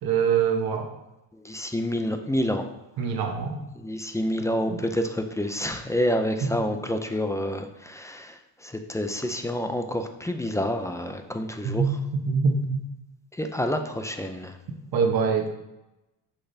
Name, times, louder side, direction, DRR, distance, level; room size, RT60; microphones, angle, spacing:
voice 1, 0.0-0.9 3.0-3.6 11.6-12.0 12.3-12.8 14.9-15.5, right 6 dB, 55° right, 3 dB, 1.1 m, -24 dB
voice 2, 1.3-2.7 3.0-3.2 3.7-12.0 13.3-14.6, equal, 5° left, 6 dB, 0.4 m, -28 dB
6.5 x 6.0 x 2.7 m, 0.98 s
cardioid pair, 115°, 44 cm